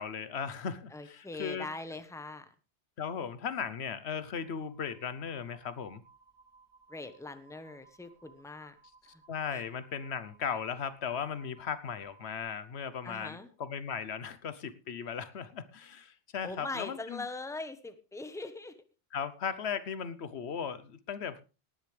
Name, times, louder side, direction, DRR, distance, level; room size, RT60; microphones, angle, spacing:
voice 1, 0.0-1.7 3.0-6.0 9.3-17.2 19.1-21.4, left 7 dB, 80° left, 14 dB, 1.2 m, -37 dB
voice 2, 0.9-2.5 6.9-8.8 9.0-9.2 9.5-9.6 13.0-13.5 16.4-18.8, left 2 dB, 5° left, 10 dB, 1.0 m, -41 dB
sound 1, 4.4-12.4, right 4 dB, 65° left, 8.2 m, -62 dB
18.0 x 10.0 x 3.3 m, 0.32 s
omnidirectional pair, 1.1 m